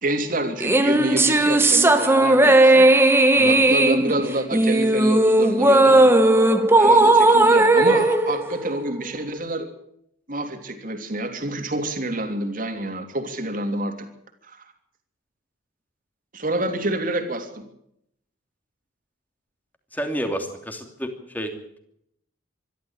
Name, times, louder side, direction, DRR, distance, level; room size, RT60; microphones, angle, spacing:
voice 1, 0.0-6.1 6.8-9.7 10.3-14.1 14.4-14.6 16.3-17.7, right 1 dB, 45° right, 5 dB, 3.1 m, -28 dB
sound 1, 0.6-9.2, right 2 dB, 10° right, 1.4 m, -16 dB
voice 2, 3.4-3.7 19.9-21.5, equal, 10° left, 5 dB, 2.9 m, -30 dB
25.0 x 12.5 x 8.8 m, 0.73 s
head